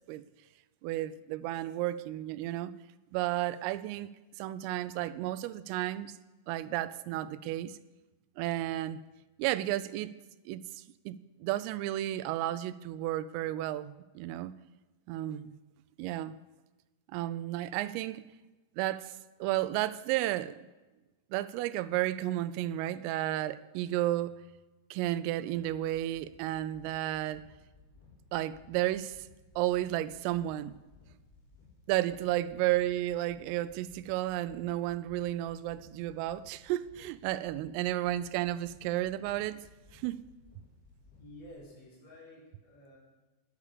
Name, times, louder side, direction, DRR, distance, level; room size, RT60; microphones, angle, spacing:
voice 1, 0.8-2.7 3.1-4.1 4.4-6.1 6.5-7.8 8.4-9.0 9.4-10.1 10.5-14.5 15.1-15.6 16.0-16.3 17.1-18.2 18.8-19.1 19.4-20.6 21.3-24.3 24.9-27.4 28.3-29.2 29.6-30.8 31.9-39.6 39.9-40.2, right 14 dB, 90° right, 3.2 m, -32 dB
sound 1, 25.5-41.5, left 3 dB, 55° left, 5.7 m, -59 dB
voice 2, 41.2-43.0, left 1 dB, 35° left, 5.0 m, -51 dB
13.0 x 10.0 x 6.6 m
omnidirectional pair, 5.8 m